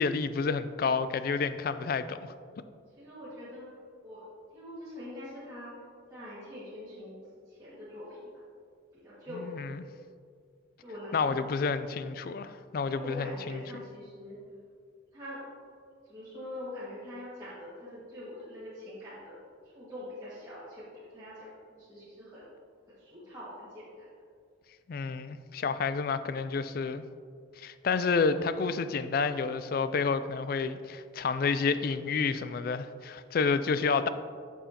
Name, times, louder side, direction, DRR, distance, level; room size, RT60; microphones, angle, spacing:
voice 1, 0.0-2.3 9.3-9.7 11.1-13.6 24.9-27.0 27.6-34.1, left 5 dB, 50° left, 12 dB, 0.3 m, -29 dB
voice 2, 3.0-3.7 4.0-4.2 4.5-5.7 6.1-7.2 7.5-8.3 8.9-9.5 10.8-11.8 12.9-14.4 15.1-15.4 16.1-19.4 19.7-22.4 23.0-24.1, left 1 dB, 15° right, -13 dB, 1.8 m, -44 dB
8.8 x 7.1 x 2.9 m, 2.2 s
head